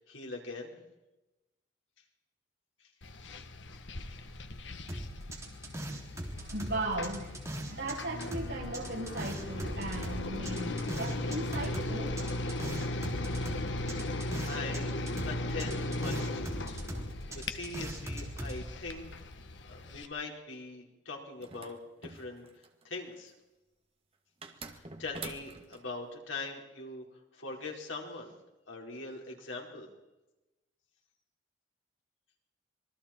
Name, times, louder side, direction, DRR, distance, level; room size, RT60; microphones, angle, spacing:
voice 1, 0.1-0.8 14.5-16.8 17.5-19.1 19.6-22.4 22.8-23.3 24.6-27.0 27.3-28.3 28.7-29.9, left 3 dB, 90° left, 0 dB, 4.7 m, -42 dB
sound 1, 3.0-20.1, left 1 dB, 70° left, 1.4 m, -37 dB
sound 2, 4.9-7.9 8.2-14.8 15.1-18.6, right 1 dB, 15° right, 3.7 m, -40 dB
voice 2, 6.4-12.2, right 2 dB, 65° right, -4 dB, 7.9 m, -37 dB
sound 3, 21.4-22.8 24.4-25.8, right 4 dB, 30° right, 2.1 m, -46 dB
27.0 x 23.0 x 4.5 m, 1.0 s
head